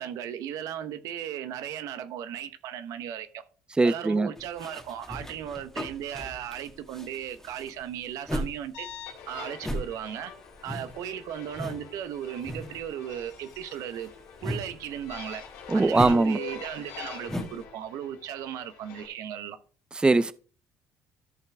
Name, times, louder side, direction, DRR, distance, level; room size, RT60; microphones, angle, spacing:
voice 1, 0.0-3.4 3.8-8.9 9.3-10.3 10.6-14.1 14.4-15.4 15.7-19.6, right 10 dB, 70° right, 1.1 m, -36 dB
voice 2, 3.8-4.3 15.7-16.4 20.0-20.3, right 3 dB, 15° right, 0.5 m, -21 dB
sound 1, 4.4-8.6 8.9-11.9 12.1-12.8 13.1-17.6, equal, 10° left, 1.8 m, -37 dB
sound 2, 8.7-19.1, left 6 dB, 80° left, 2.6 m, -45 dB
13.5 x 5.8 x 3.5 m
supercardioid pair, 75°, 6 cm